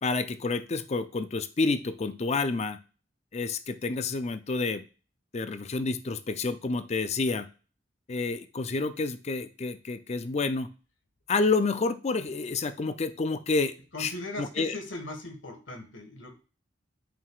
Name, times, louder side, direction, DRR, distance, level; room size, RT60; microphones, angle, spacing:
voice 1, 0.0-2.8 3.3-4.8 5.3-7.5 8.1-10.7 11.3-13.7 14.0-14.1 14.4-14.7, left 3 dB, 35° left, 11 dB, 0.5 m, -29 dB
voice 2, 13.9-16.4, left 2 dB, 85° left, 4 dB, 1.6 m, -39 dB
9.0 x 4.7 x 2.4 m, 0.35 s
head